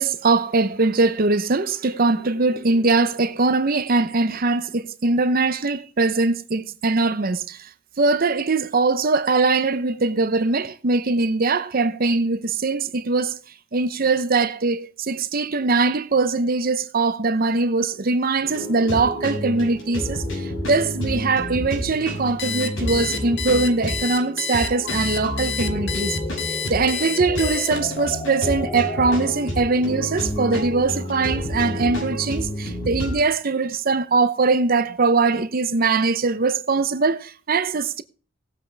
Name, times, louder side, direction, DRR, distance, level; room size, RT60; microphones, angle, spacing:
voice 1, 0.0-7.7 8.0-13.4 13.7-38.0, right 3 dB, 50° right, 0.7 m, -21 dB
sound 1, 18.3-29.6, left 2 dB, 35° left, 1.4 m, -39 dB
sound 2, 18.4-33.2, equal, 90° left, 6.7 m, -29 dB
Alarm, 22.4-28.0, left 7 dB, 55° left, 1.2 m, -29 dB
18.0 x 7.8 x 3.4 m
head